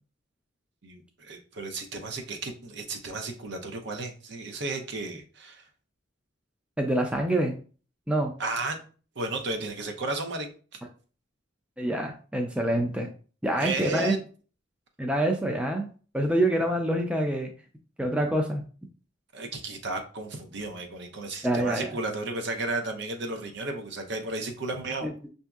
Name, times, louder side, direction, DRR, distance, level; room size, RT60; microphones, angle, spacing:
voice 1, 0.8-5.6 8.4-8.8 9.2-10.5 13.6-14.2 19.3-25.1, right 2 dB, 60° right, 5 dB, 0.6 m, -33 dB
voice 2, 6.8-7.5 8.1-8.3 11.8-13.1 13.4-14.1 15.0-15.9 16.1-17.5 18.0-18.6 21.4-21.9 25.0-25.1, right 1 dB, 5° right, 2 dB, 0.4 m, -26 dB
5.9 x 2.7 x 2.3 m, 0.39 s
head